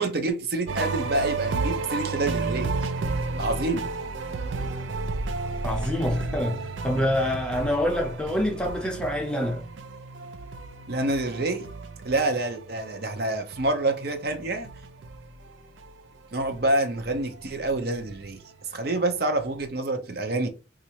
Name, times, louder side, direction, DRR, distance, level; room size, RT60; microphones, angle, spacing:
voice 1, 0.0-2.9 3.4-3.9 10.9-11.7 12.0-14.7 16.3-18.4 18.7-20.5, right 2 dB, 55° right, 0.7 m, -27 dB
sound 1, 0.7-16.0 16.3-19.0 19.3-19.6, right 3 dB, 90° right, 0.5 m, -33 dB
voice 2, 5.6-9.6, left 1 dB, 5° left, 0.6 m, -26 dB
4.1 x 2.5 x 2.8 m
head